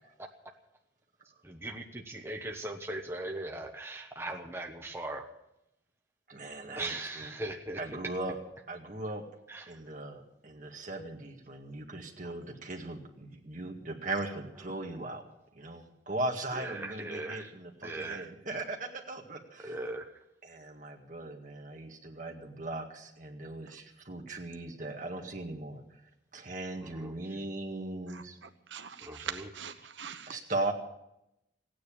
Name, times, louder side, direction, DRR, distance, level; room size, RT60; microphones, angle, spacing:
voice 1, 1.4-5.3 6.7-7.8 9.5-9.6 16.5-17.5 17.8-18.3 19.6-20.1 26.9-27.1 29.0-29.5, right 2 dB, 15° right, 2 dB, 1.1 m, -39 dB
voice 2, 6.3-7.3 7.8-8.4 8.7-9.2 9.7-15.2 15.5-19.8 20.4-26.0 26.3-28.4 30.3-30.7, right 2 dB, 45° right, 2 dB, 2.0 m, -38 dB
voice 3, 28.1-30.4, right 7 dB, 85° right, 8 dB, 0.9 m, -43 dB
16.0 x 9.7 x 8.6 m, 0.85 s
head